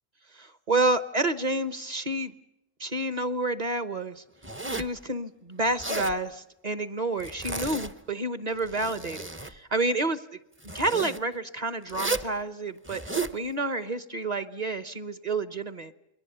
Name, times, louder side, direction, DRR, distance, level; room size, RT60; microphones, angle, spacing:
voice 1, 0.3-2.3 2.8-4.2 4.7-10.2 10.7-15.9, right 2 dB, 35° right, 12 dB, 1.0 m, -29 dB
Zipper (clothing), 4.4-5.0 5.6-6.2 7.2-8.1 8.5-9.5 10.6-11.2 11.9-12.3 12.8-13.4, right 3 dB, 10° right, 0.6 m, -33 dB
29.0 x 22.0 x 6.8 m, 0.86 s
omnidirectional pair, 1.4 m